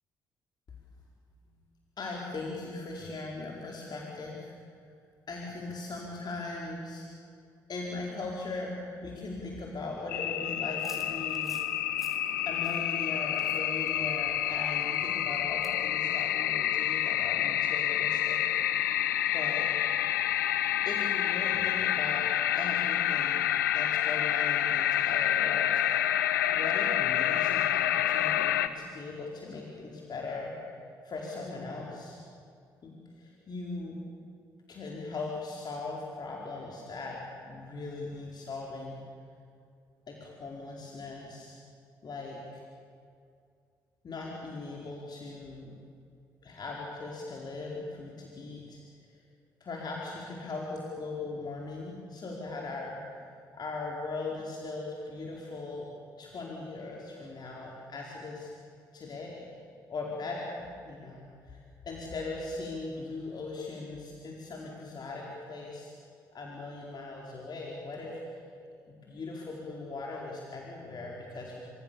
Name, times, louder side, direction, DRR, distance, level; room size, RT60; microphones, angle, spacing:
voice 1, 2.0-4.5 4.9-5.0 5.3-7.0 7.7-11.6 12.4-18.4 19.3-19.7 20.8-22.3 22.5-25.8 26.5-30.5 31.0-32.2 32.8-34.0 34.7-37.2 37.4-39.0 40.1-41.6 42.0-42.6 44.0-45.8 46.4-48.8 49.1-49.2 49.6-55.9 56.2-58.5 58.9-59.5 59.9-65.9 66.3-68.2 68.6-71.6, left 3 dB, 45° left, -2 dB, 4.9 m, -39 dB
sound 1, 10.1-28.7, left 12 dB, 85° left, 0.8 m, -28 dB
sound 2, 10.8-15.8, right 1 dB, ahead, 4.7 m, -55 dB
27.0 x 26.5 x 7.3 m, 2.3 s
figure-of-eight pair, 45°, 10 cm